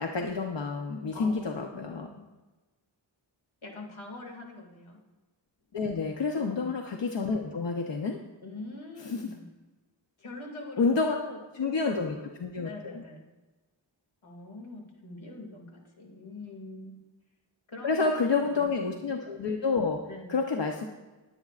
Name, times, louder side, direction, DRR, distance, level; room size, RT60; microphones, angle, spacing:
voice 1, 0.0-2.1 5.7-8.2 9.0-9.2 10.8-11.2 11.6-13.0 17.8-20.0 20.3-20.9, left 4 dB, 65° left, 2 dB, 0.9 m, -29 dB
voice 2, 1.1-2.2 3.6-5.0 6.3-6.7 8.4-9.4 10.2-12.3 12.6-13.3 14.2-17.0 17.7-19.0 20.1-20.3, left 2 dB, 85° left, 1 dB, 2.4 m, -44 dB
20.0 x 8.8 x 2.5 m, 1.2 s
wide cardioid pair, 100°, 47 cm